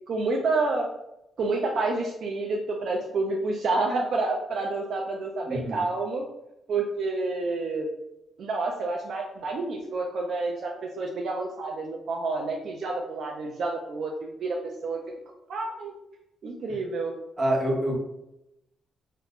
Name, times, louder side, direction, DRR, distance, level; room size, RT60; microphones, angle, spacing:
voice 1, 0.1-0.9 1.4-6.2 6.7-7.9 8.4-15.0 15.5-15.9 16.4-17.1, right 3 dB, 60° right, 1 dB, 0.3 m, -29 dB
voice 2, 5.5-5.8 17.4-18.0, right 1 dB, 25° right, -2 dB, 0.8 m, -26 dB
2.4 x 2.1 x 3.3 m, 0.87 s
cardioid pair, 120°, 0 cm